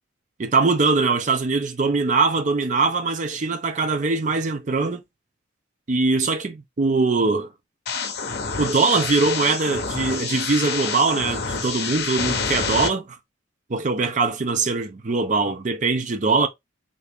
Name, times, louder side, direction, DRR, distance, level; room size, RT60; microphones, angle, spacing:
voice 1, 0.4-5.0 5.9-7.5 8.6-13.1 13.7-16.5, right 4 dB, 40° right, 0.5 m, -22 dB
sound 1, 7.9-12.9, left 5 dB, 55° left, 0.7 m, -27 dB
2.9 x 2.7 x 3.4 m
head